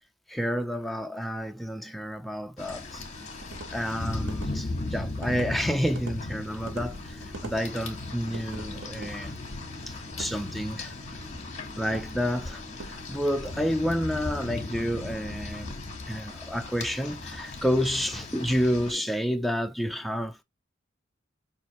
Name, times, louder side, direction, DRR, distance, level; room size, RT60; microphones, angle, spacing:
voice 1, 0.3-3.3 3.7-9.3 9.9-10.9 11.8-15.8 16.1-20.4, equal, ahead, 0.4 m, -30 dB
Rain, 2.6-18.9, left 2 dB, 35° left, 1.3 m, -37 dB
sound 1, 3.1-13.3, right 1 dB, 90° right, 1.6 m, -45 dB
5.8 x 2.7 x 2.9 m
head